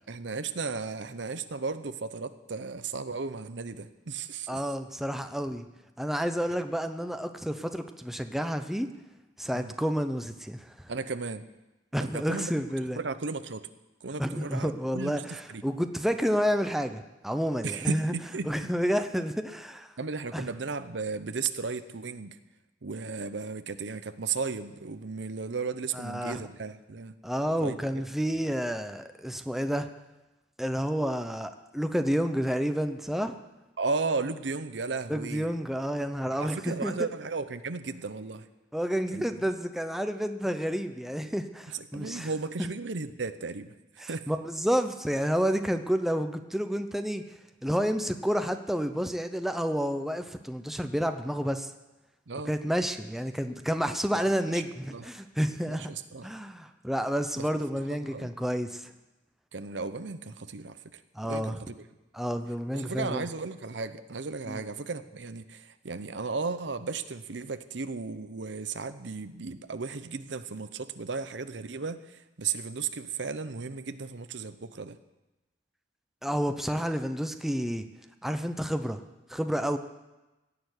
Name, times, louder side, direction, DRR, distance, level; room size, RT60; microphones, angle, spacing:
voice 1, 0.0-4.6 9.5-9.7 10.9-11.5 12.1-12.5 12.9-13.7 14.0-15.6 17.6-18.7 20.0-22.4 22.8-27.1 27.5-28.1 33.8-35.5 36.4-38.5 39.1-39.2 41.7-43.7 44.1-44.3 52.3-52.6 54.5-54.6 54.9-55.0 55.7-56.3 57.3-57.5 57.8-58.3 59.5-61.0 61.3-61.8 62.7-75.0, right 4 dB, 80° right, 11 dB, 0.8 m, -35 dB
voice 2, 4.5-5.6 6.0-8.9 9.4-10.9 11.9-13.0 14.2-18.1 18.5-19.9 20.3-20.5 25.9-26.4 27.2-29.9 30.6-33.4 35.1-36.9 38.7-42.3 44.0-47.2 47.6-51.7 52.5-55.9 56.2-58.9 61.1-61.6 62.1-63.3 64.5-64.6 76.2-77.8 78.2-79.0 79.3-79.8, equal, ahead, 7 dB, 0.7 m, -30 dB
17.0 x 6.9 x 9.6 m, 1.0 s
head